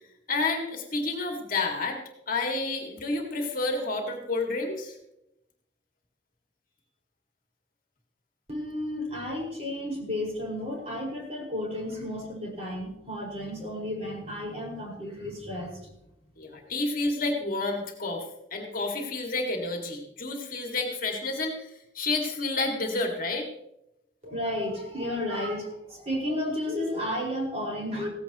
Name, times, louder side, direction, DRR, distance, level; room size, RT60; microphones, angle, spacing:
voice 1, 0.3-2.0 2.3-5.0 16.4-18.2 18.5-21.7 21.9-23.5, left 3 dB, 50° left, 2 dB, 2.1 m, -30 dB
voice 2, 8.5-15.8 24.2-28.1, left 1 dB, 35° right, -3 dB, 5.2 m, -32 dB
16.5 x 15.5 x 3.0 m, 0.86 s
head